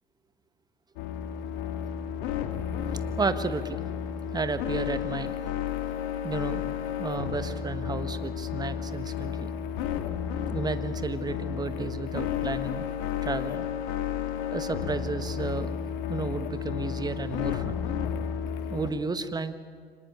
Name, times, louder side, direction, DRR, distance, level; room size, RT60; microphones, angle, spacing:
sound 1, 1.0-18.9, left 8 dB, 55° left, 2.2 m, -32 dB
voice 1, 3.2-3.8 4.3-5.3 6.2-6.6 7.0-9.5 10.5-12.8 13.2-13.6 14.5-15.7 16.1-17.8 18.7-19.6, right 4 dB, 15° right, 11 dB, 1.4 m, -32 dB
25.0 x 20.0 x 9.4 m, 2.1 s
hypercardioid pair, 90°, 31 cm